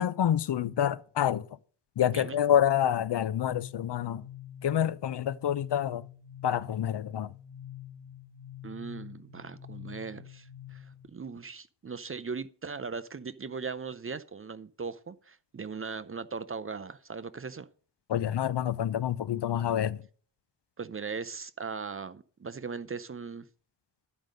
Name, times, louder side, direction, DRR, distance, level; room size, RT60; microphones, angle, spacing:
voice 1, 0.0-1.5 2.0-4.3 4.6-6.1 6.4-7.3 18.1-20.0, left 10 dB, 65° left, 0.6 m, -27 dB
sound 1, 3.5-11.1, left 10 dB, 10° right, 5.3 m, -47 dB
voice 2, 8.6-17.7 20.8-23.5, right 5 dB, 30° right, 0.5 m, -39 dB
11.0 x 5.2 x 6.4 m
wide cardioid pair, 110°, 45 cm